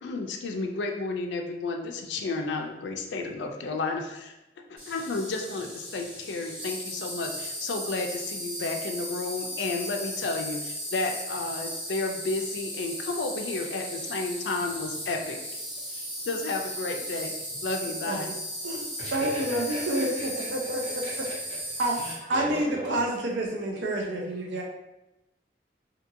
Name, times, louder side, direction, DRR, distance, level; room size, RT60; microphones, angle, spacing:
voice 1, 0.0-4.3 4.7-15.4 15.9-17.3 17.6-18.3, left 3 dB, 90° left, 3 dB, 0.4 m, -32 dB
Insect, 4.8-22.1, equal, 55° right, 1.3 m, -36 dB
voice 2, 18.1-18.4 18.6-21.0 21.8-22.0 22.3-24.6, right 1 dB, 90° right, -1 dB, 0.5 m, -29 dB
voice 3, 18.7-21.6 21.9-22.9, equal, 35° right, -10 dB, 1.4 m, -39 dB
2.8 x 2.7 x 2.6 m, 0.96 s
head